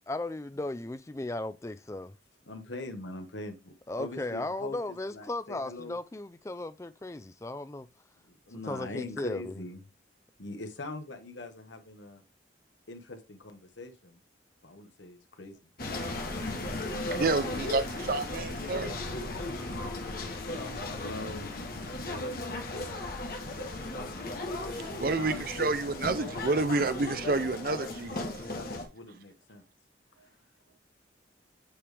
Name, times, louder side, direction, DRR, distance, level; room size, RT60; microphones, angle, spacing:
voice 1, 0.1-2.2 3.9-7.9 8.7-9.6, left 2 dB, 15° left, 0.3 m, -36 dB
voice 2, 2.4-4.8 5.1-6.0 8.2-9.8 10.4-12.2 12.9-14.2 14.6-15.7 17.0-18.1 20.7-21.6 22.1-23.0 23.4-23.7 25.1-25.8 27.9-29.6, left 2 dB, 80° left, 1.2 m, -43 dB
sound 1, 15.8-28.8, left 2 dB, 50° left, 1.2 m, -36 dB
voice 3, 17.1-19.0 24.7-28.3, right 3 dB, 50° right, 0.5 m, -29 dB
8.6 x 3.3 x 3.4 m
head